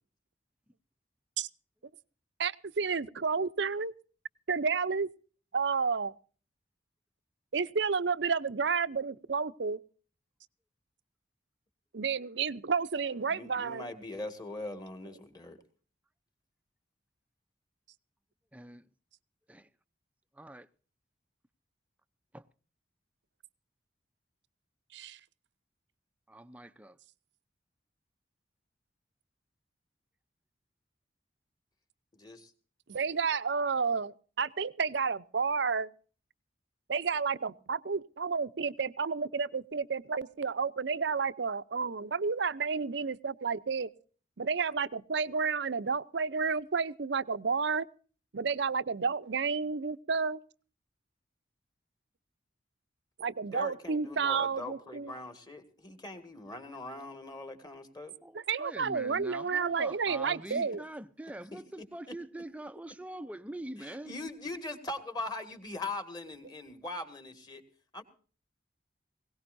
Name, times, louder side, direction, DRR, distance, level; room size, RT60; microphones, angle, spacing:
voice 1, 2.4-3.9 4.5-5.1 5.5-6.1 7.5-9.8 11.9-13.9 24.9-25.2 32.9-35.9 36.9-43.9 44.4-47.9 48.3-50.4 53.2-55.1 58.3-60.8, right 5 dB, 65° right, 0.6 m, -31 dB
voice 2, 13.3-15.6 32.2-32.5 53.5-58.1 61.5-61.6 62.1-62.2 63.8-67.6 67.9-68.0, left 2 dB, 20° left, 2.0 m, -41 dB
voice 3, 18.5-18.8 19.5-19.7 20.3-20.7 22.3-22.4 26.3-27.0 58.2-64.1, right 1 dB, 5° right, 0.6 m, -44 dB
21.0 x 17.5 x 2.6 m
head